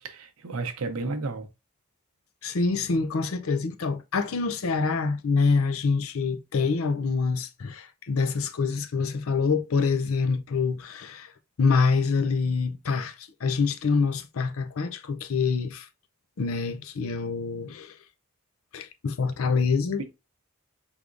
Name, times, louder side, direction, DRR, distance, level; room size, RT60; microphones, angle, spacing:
voice 1, 0.0-1.5, right 3 dB, 80° right, 0.7 m, -32 dB
voice 2, 2.4-11.3 11.6-15.9 16.4-17.9 18.7-20.0, left 4 dB, 70° left, 0.5 m, -26 dB
4.8 x 3.5 x 2.5 m
head